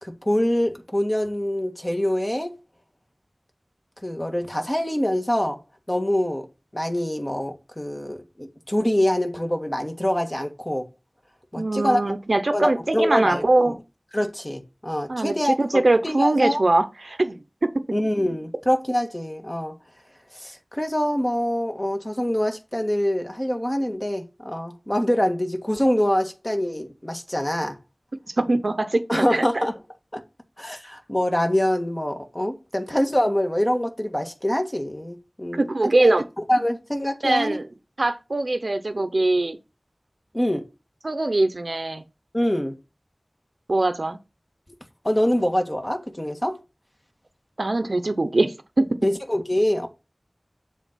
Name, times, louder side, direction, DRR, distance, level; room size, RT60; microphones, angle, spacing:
voice 1, 0.0-2.5 4.0-5.6 5.9-6.5 6.7-10.8 11.5-12.1 12.5-13.8 14.1-16.6 17.9-19.7 20.3-27.8 29.1-29.8 30.1-30.2 30.6-35.6 36.0-36.1 36.5-37.6 40.3-40.6 42.3-42.7 45.0-46.6 49.0-49.9, equal, 25° left, 1.6 m, -25 dB
voice 2, 11.6-13.8 15.1-17.8 28.4-29.7 35.5-36.3 37.2-37.7 38.0-39.6 41.0-42.0 43.7-44.2 47.6-48.9, right 2 dB, 80° right, 0.7 m, -22 dB
7.3 x 3.8 x 5.6 m
wide cardioid pair, 40°, 0 cm